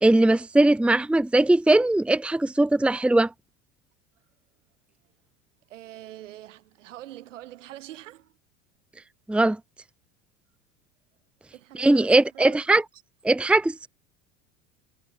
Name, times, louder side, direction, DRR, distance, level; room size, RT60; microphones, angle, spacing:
voice 1, 0.0-3.3 9.3-9.6 11.8-12.8 13.2-13.9, right 2 dB, 5° right, 0.9 m, -20 dB
voice 2, 5.7-8.3 11.5-12.6, right 14 dB, 80° right, 6.3 m, -44 dB
hypercardioid pair, 85°, 36 cm